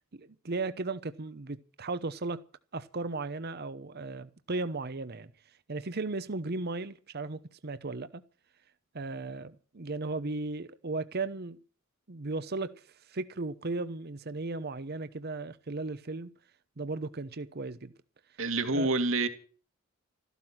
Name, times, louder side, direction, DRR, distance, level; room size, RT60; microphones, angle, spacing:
voice 1, 0.1-2.4 2.7-5.3 5.7-8.2 8.9-11.6 12.1-12.8 13.1-16.3 16.8-17.9 18.7-18.9, right 3 dB, 50° right, 0.9 m, -36 dB
voice 2, 18.4-19.3, right 3 dB, 65° right, 2.4 m, -27 dB
14.0 x 12.0 x 7.4 m
head